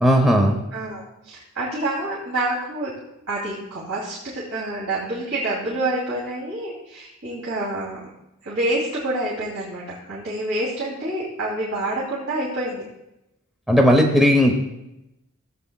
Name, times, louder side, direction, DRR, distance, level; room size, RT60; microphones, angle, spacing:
voice 1, 0.0-0.6 13.7-14.5, equal, ahead, 1 dB, 0.8 m, -16 dB
voice 2, 0.7-3.0 3.3-8.1 8.4-12.8, right 1 dB, 65° right, -8 dB, 2.8 m, -27 dB
15.5 x 8.4 x 2.3 m, 0.89 s
head